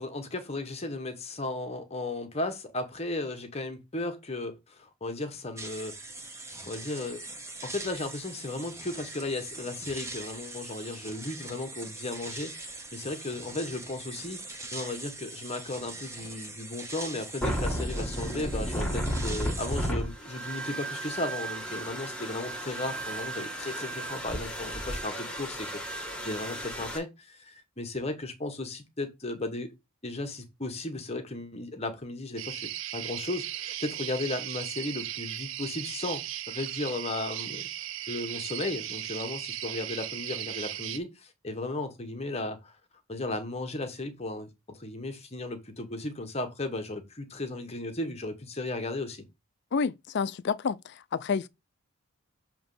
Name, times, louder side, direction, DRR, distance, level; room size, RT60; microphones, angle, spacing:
voice 1, 0.0-6.0 6.6-7.2 7.6-14.4 14.7-29.7 30.0-37.7 38.1-42.8 43.1-44.5 44.7-49.2, left 2 dB, 30° left, 1.0 m, -35 dB
sound 1, 5.6-19.9, right 2 dB, 15° right, 0.7 m, -42 dB
sound 2, 17.4-27.0, right 1 dB, 5° left, 1.3 m, -34 dB
sound 3, 32.4-41.0, right 12 dB, 60° right, 0.4 m, -37 dB
voice 2, 49.7-51.5, left 5 dB, 50° left, 0.4 m, -29 dB
7.0 x 3.0 x 5.3 m
head